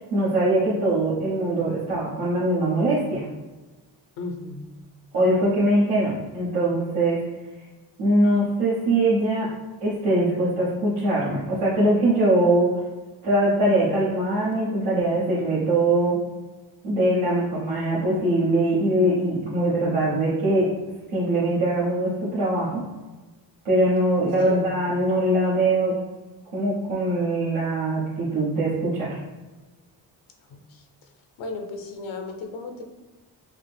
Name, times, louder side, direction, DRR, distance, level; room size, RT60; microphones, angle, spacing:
voice 1, 0.1-3.2 5.1-7.2 8.0-9.5 9.8-12.7 13.2-16.2 16.8-20.7 21.1-22.8 23.6-25.9 26.5-29.2, right 1 dB, 85° right, -9 dB, 1.1 m, -22 dB
voice 2, 4.2-4.7 24.4-24.8 30.5-30.8 31.4-32.8, left 3 dB, 75° left, 4 dB, 0.8 m, -35 dB
5.1 x 2.1 x 3.3 m, 1.2 s
supercardioid pair, 50°, 47 cm